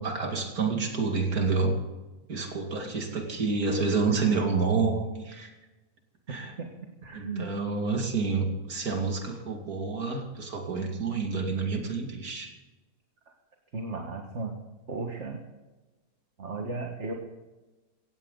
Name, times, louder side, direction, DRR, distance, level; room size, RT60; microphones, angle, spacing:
voice 1, 0.0-1.7 2.3-5.5 6.3-6.5 7.1-12.5, right 4 dB, 80° right, 3 dB, 2.9 m, -28 dB
voice 2, 7.0-7.5 13.7-14.5 14.9-15.4 16.4-17.1, right 3 dB, 50° right, 2 dB, 2.0 m, -35 dB
17.5 x 16.0 x 4.0 m, 1.1 s
omnidirectional pair, 1.5 m